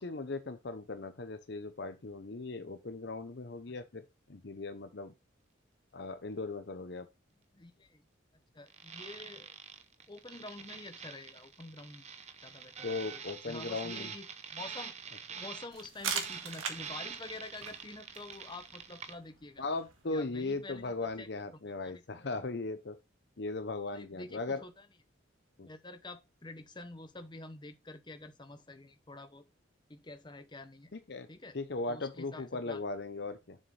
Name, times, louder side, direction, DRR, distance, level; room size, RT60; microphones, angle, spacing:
voice 1, 0.0-4.0 4.3-5.1 5.9-7.1 12.8-14.1 19.6-23.0 23.4-24.6 25.6-25.7 30.9-33.6, left 3 dB, 55° left, 0.7 m, -38 dB
voice 2, 7.5-8.1 8.5-9.5 10.1-12.0 12.4-14.9 15.3-19.7 20.1-22.3 23.9-24.9 25.7-29.4 29.9-30.9 31.3-31.6 31.9-32.8, left 2 dB, 20° left, 0.9 m, -48 dB
sound 1, 8.7-19.1, right 7 dB, 35° right, 0.8 m, -46 dB
sound 2, 15.7-21.2, right 6 dB, 90° right, 1.9 m, -43 dB
7.4 x 6.4 x 3.3 m
head